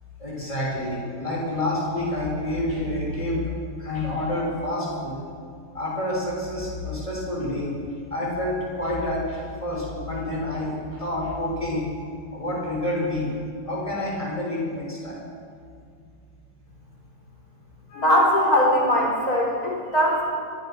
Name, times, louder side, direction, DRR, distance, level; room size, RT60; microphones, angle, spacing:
voice 1, 0.2-5.1 5.7-7.7 8.1-11.8 12.3-13.3 13.7-15.2, left 1 dB, 15° left, -4 dB, 6.9 m, -28 dB
voice 2, 17.9-20.2, equal, 40° left, -3 dB, 5.6 m, -20 dB
24.5 x 17.5 x 6.3 m, 2.3 s
omnidirectional pair, 2.3 m